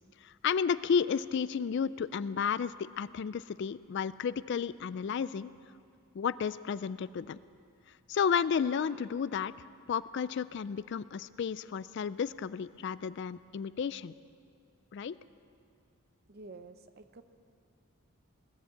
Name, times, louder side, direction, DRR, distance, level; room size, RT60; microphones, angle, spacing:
voice 1, 0.2-5.5 6.1-7.4 8.1-14.1 14.9-15.1, left 6 dB, 55° left, 17 dB, 0.3 m, -32 dB
voice 2, 16.3-17.2, right 3 dB, 45° right, 10 dB, 0.7 m, -49 dB
19.5 x 9.8 x 7.4 m, 2.3 s
head